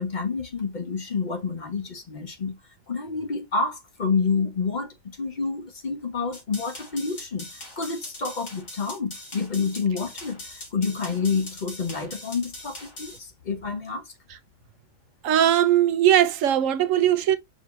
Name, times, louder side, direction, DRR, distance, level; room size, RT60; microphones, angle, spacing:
voice 1, 0.0-2.6 2.9-14.1, left 4 dB, 40° left, 0.8 m, -28 dB
sound 1, 6.3-13.2, left 1 dB, 90° left, 2.4 m, -41 dB
voice 2, 15.2-17.4, right 11 dB, 80° right, 1.0 m, -19 dB
5.2 x 2.8 x 3.1 m
omnidirectional pair, 1.4 m